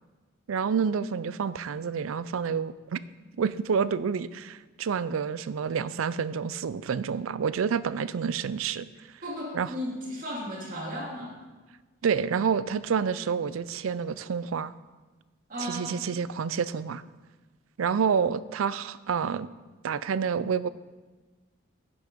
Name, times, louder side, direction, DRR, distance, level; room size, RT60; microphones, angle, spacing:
voice 1, 0.5-3.0 3.4-8.9 9.5-9.7 12.0-14.7 15.7-17.0 17.8-19.5 19.8-20.7, right 6 dB, 85° right, 16 dB, 0.4 m, -28 dB
voice 2, 9.2-11.4 15.5-16.0, equal, 40° right, -3 dB, 2.3 m, -35 dB
10.5 x 6.2 x 5.1 m, 1.3 s
head